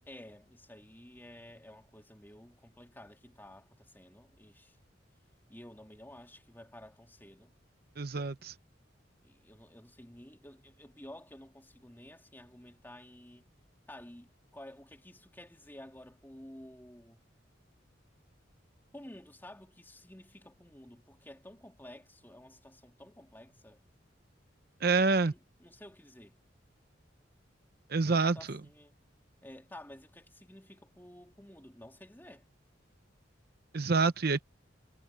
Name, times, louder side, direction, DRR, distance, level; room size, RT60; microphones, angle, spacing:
voice 1, 0.1-4.8 5.5-7.5 9.2-13.5 13.9-17.2 18.9-23.8 25.2-26.4 28.0-28.9 29.4-32.5, left 1 dB, 10° left, 3.1 m, -52 dB
voice 2, 8.0-8.5 24.8-25.3 27.9-28.6 33.7-34.4, right 4 dB, 55° right, 0.8 m, -27 dB
head